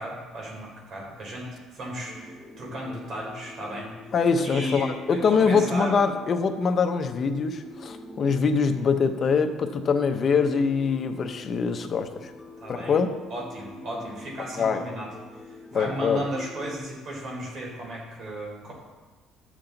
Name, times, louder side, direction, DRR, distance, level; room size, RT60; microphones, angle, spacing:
voice 1, 0.0-3.9 4.4-6.0 12.6-12.9 13.3-15.1 15.3-18.7, equal, 45° right, -2 dB, 3.6 m, -35 dB
sound 1, 2.1-16.8, left 1 dB, 10° left, 1.1 m, -45 dB
voice 2, 4.1-12.3 12.8-13.1 14.6-14.8 15.7-16.2, left 5 dB, 35° left, 7 dB, 0.7 m, -23 dB
12.5 x 7.4 x 3.9 m, 1.3 s
cardioid pair, 145°, 0 cm